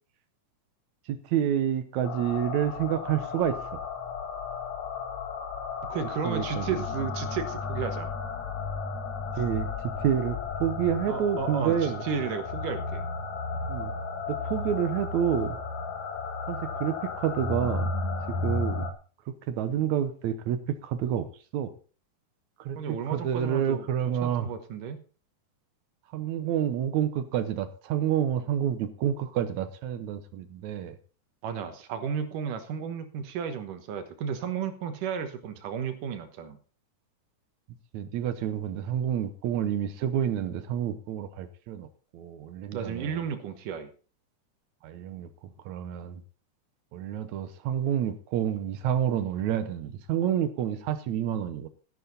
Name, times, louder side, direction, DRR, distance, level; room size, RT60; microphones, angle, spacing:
voice 1, 1.1-3.8 6.3-6.8 9.4-12.0 13.7-13.9 14.3-15.6 16.5-17.9 18.3-18.9 19.3-21.7 22.6-22.8 23.1-24.5 26.1-31.0 37.9-41.9 42.1-43.2 44.8-45.3 45.7-46.2 46.9-51.7, right 9 dB, 70° right, 11 dB, 2.1 m, -29 dB
sound 1, 2.0-18.9, left 4 dB, 65° left, 2.8 m, -34 dB
voice 2, 5.9-8.1 11.1-13.1 22.8-23.8 24.2-25.0 31.4-36.6 42.7-43.9, right 7 dB, 90° right, 8 dB, 2.9 m, -33 dB
12.5 x 11.5 x 4.0 m, 0.37 s
omnidirectional pair, 3.6 m